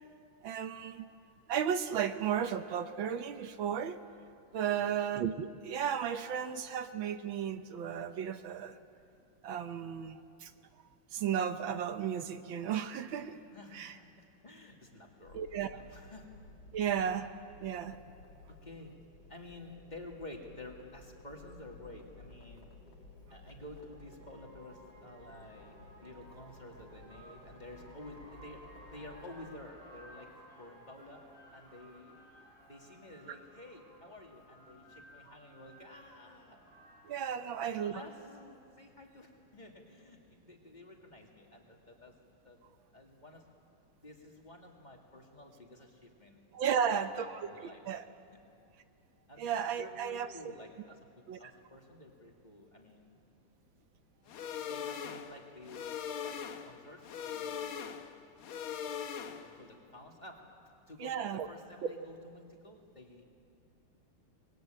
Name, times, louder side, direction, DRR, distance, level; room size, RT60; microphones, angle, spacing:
voice 1, 0.4-1.0 1.5-4.0 4.5-8.8 9.4-10.5 11.1-13.4 13.7-13.9 15.3-15.7 16.7-17.3 17.6-18.0 33.3-33.4 37.0-38.0 46.5-47.5 47.9-48.1 49.4-50.3 51.3-51.4 61.0-61.5, right 8 dB, 70° right, 9 dB, 1.6 m, -34 dB
voice 2, 13.5-15.4 15.7-16.3 18.5-18.9 19.3-22.7 23.3-28.6 28.9-31.2 31.5-32.1 32.7-36.6 37.4-42.1 42.4-42.6 42.9-43.5 44.0-46.4 46.7-48.0 49.3-53.1 54.6-56.0 56.2-58.1 59.3-60.4 60.9-63.2, left 2 dB, 20° left, 0 dB, 2.5 m, -51 dB
sound 1, 15.2-29.6, left 2 dB, 60° left, 2.9 m, -55 dB
sound 2, 23.3-38.7, right 1 dB, 85° right, 7.0 m, -58 dB
sound 3, 54.3-59.7, left 8 dB, 80° left, 1.9 m, -40 dB
24.5 x 21.0 x 9.1 m, 2.4 s
omnidirectional pair, 2.4 m